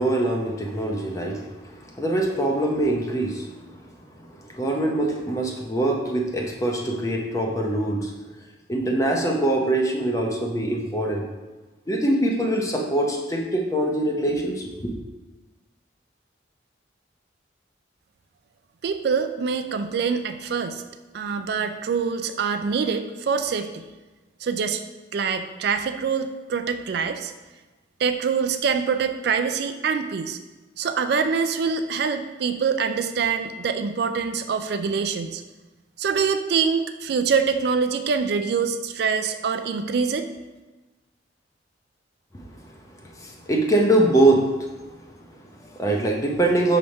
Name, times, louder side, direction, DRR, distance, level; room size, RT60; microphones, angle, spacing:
voice 1, 0.0-3.8 4.2-8.2 8.7-11.3 11.9-14.9 42.3-46.8, right 1 dB, 15° left, 1 dB, 0.7 m, -24 dB
voice 2, 18.8-20.8 21.1-23.8 24.4-24.8 25.1-27.3 28.0-30.4 30.8-35.4 36.0-40.3, right 5 dB, 55° right, 9 dB, 0.3 m, -25 dB
5.8 x 3.4 x 5.2 m, 1.2 s
head